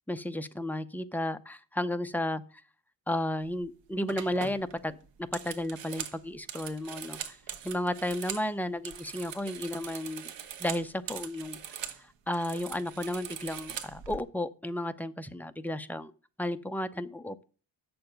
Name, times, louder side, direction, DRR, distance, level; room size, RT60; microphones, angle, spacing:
voice 1, 0.1-2.4 3.1-7.4 7.6-10.3 10.6-16.1 16.4-17.4, left 1 dB, 5° left, 9 dB, 0.6 m, -33 dB
analogic dial telephone, 3.5-3.7 4.1-8.5 8.8-12.0 12.3-14.2, right 9 dB, 85° right, 1.2 m, -41 dB
8.7 x 6.9 x 5.1 m, 0.37 s
cardioid pair, 120°, 43 cm